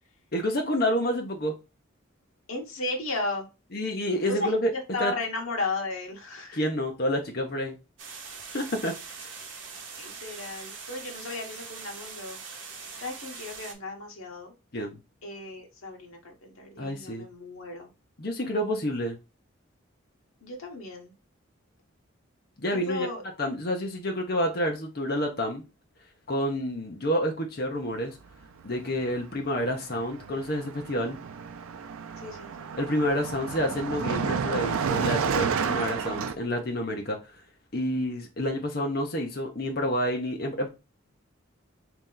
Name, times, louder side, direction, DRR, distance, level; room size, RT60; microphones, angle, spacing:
voice 1, 0.3-1.5 3.7-4.7 5.0-5.1 6.5-7.7 8.5-8.9 14.7-15.0 16.8-17.3 18.2-19.2 22.6-23.1 23.4-25.6 26.3-28.1 28.6-31.2 32.8-37.2 37.7-40.7, equal, 45° left, 0.9 m, -28 dB
voice 2, 2.5-3.5 4.3-6.6 10.0-12.4 13.0-14.5 15.2-17.9 20.4-21.1 22.7-23.2 32.2-32.7, left 2 dB, 85° left, 1.1 m, -35 dB
sound 1, 8.0-13.7, right 5 dB, 55° right, 0.9 m, -42 dB
Car passing by, 28.9-29.1 29.3-36.3, right 6 dB, 85° right, 0.4 m, -31 dB
3.3 x 3.0 x 3.8 m
head